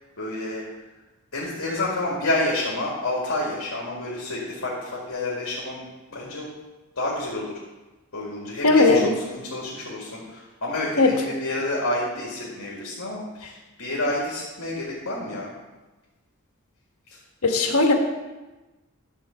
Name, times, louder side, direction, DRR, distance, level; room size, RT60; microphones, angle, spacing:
voice 1, 0.2-0.7 1.3-5.8 6.1-6.5 7.0-7.5 8.1-15.5, left 2 dB, 60° left, -5 dB, 2.1 m, -29 dB
voice 2, 8.6-9.1 11.0-11.1 17.4-17.9, left 3 dB, 80° left, 3 dB, 1.4 m, -17 dB
11.5 x 4.1 x 6.9 m, 1.1 s
head